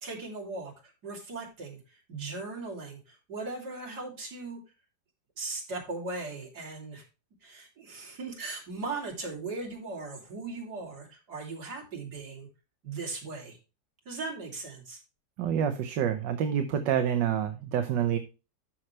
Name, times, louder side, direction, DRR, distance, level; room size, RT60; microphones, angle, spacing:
voice 1, 0.0-4.6 5.4-7.0 7.4-12.5 12.8-13.6 14.1-15.0, right 3 dB, 65° right, 0 dB, 3.6 m, -38 dB
voice 2, 15.4-18.2, right 9 dB, 80° right, 7 dB, 1.6 m, -27 dB
12.0 x 6.1 x 3.2 m, 0.30 s
omnidirectional pair, 1.9 m